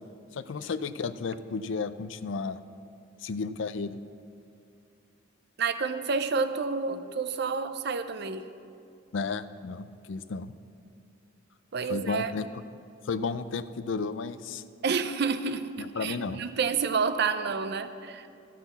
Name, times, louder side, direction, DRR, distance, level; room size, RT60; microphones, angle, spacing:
voice 1, 0.3-2.6 3.2-4.0 9.1-10.5 11.9-12.5 13.1-14.6 15.8-16.4, left 4 dB, 70° left, 13 dB, 0.5 m, -33 dB
voice 2, 5.6-8.4 11.7-12.3 14.8-18.3, right 5 dB, 55° right, 11 dB, 0.6 m, -29 dB
13.5 x 5.9 x 7.1 m, 2.5 s
head